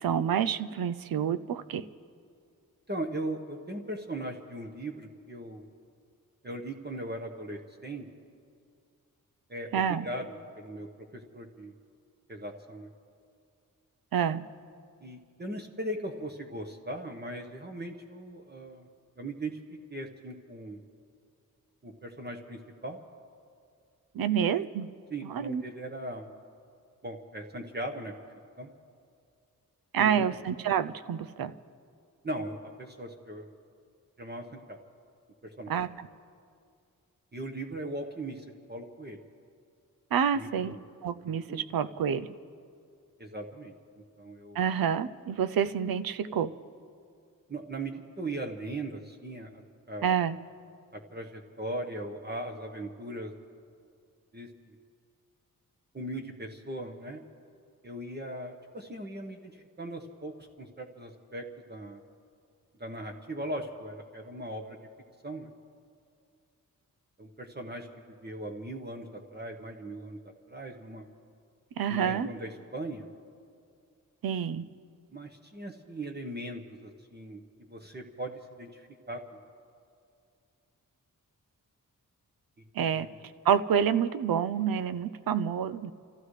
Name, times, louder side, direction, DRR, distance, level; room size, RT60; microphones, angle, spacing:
voice 1, 0.0-1.8 9.7-10.1 14.1-14.4 24.1-24.9 25.2-25.6 29.9-31.5 35.7-35.9 40.1-40.8 41.0-42.3 44.5-46.5 50.0-50.4 71.8-72.3 74.2-74.7 82.7-83.1 83.4-85.9, right 8 dB, 85° right, 13 dB, 0.6 m, -28 dB
voice 2, 2.9-5.6 6.4-8.0 9.5-10.9 11.1-11.7 12.3-12.9 15.0-18.9 19.2-19.6 19.9-20.8 21.8-23.0 25.1-26.3 27.0-28.2 28.6-28.7 30.0-30.2 32.2-33.5 34.2-34.8 35.4-35.7 37.3-39.2 40.3-40.8 41.2-41.6 43.2-43.7 44.2-44.6 47.5-49.6 49.9-50.2 50.9-53.3 54.3-54.7 55.9-57.2 57.8-62.0 62.8-64.8 65.2-65.5 67.2-67.9 68.2-71.1 71.9-73.1 75.1-77.4 77.7-78.3 78.6-79.4 82.9-83.2, right 1 dB, 30° right, 3 dB, 1.1 m, -39 dB
29.5 x 15.0 x 3.2 m, 2.4 s
wide cardioid pair, 105°, 34 cm